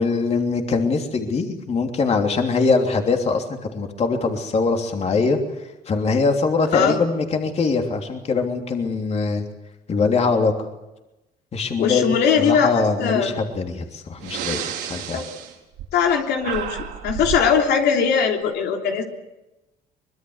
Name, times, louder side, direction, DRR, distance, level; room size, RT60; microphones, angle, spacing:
voice 1, 0.0-9.4 9.9-10.5 11.5-12.1 12.5-14.6 14.9-15.2, left 4 dB, 40° left, 3 dB, 3.2 m, -22 dB
voice 2, 11.8-13.3 15.1-15.3 15.9-16.8 17.0-19.0, left 6 dB, 80° left, 2 dB, 3.4 m, -20 dB
Breathing, 13.6-13.7 14.2-16.1 16.4-17.5, right 10 dB, 90° right, 4.6 m, -31 dB
24.5 x 21.5 x 8.0 m, 0.98 s
cardioid pair, 110°, 17 cm